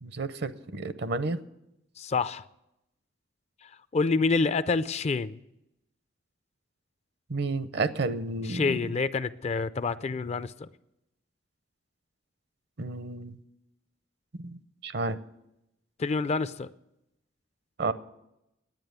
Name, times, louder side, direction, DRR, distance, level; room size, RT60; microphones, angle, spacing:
voice 1, 0.0-1.4 7.3-8.7 12.8-13.4 14.3-15.2 17.8-17.9, right 3 dB, 65° right, 0.7 m, -31 dB
voice 2, 2.0-2.4 3.9-5.4 8.5-10.7 16.0-16.7, left 4 dB, 35° left, 0.4 m, -27 dB
10.5 x 9.2 x 8.0 m
head